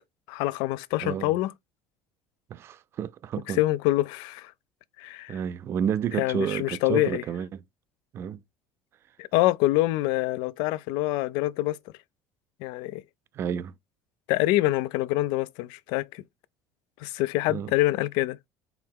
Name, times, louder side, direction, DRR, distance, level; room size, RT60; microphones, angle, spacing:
voice 1, 0.3-1.5 3.5-4.5 5.0-5.4 6.1-7.2 9.2-11.8 12.6-13.0 14.3-16.2 17.0-18.4, left 17 dB, 70° left, 0.3 m, -26 dB
voice 2, 1.0-1.3 2.5-3.6 5.3-7.6 8.1-8.4 13.3-13.7 17.5-17.7, right 8 dB, 35° right, 0.4 m, -30 dB
4.7 x 3.1 x 3.5 m
cardioid pair, 155°, 8 cm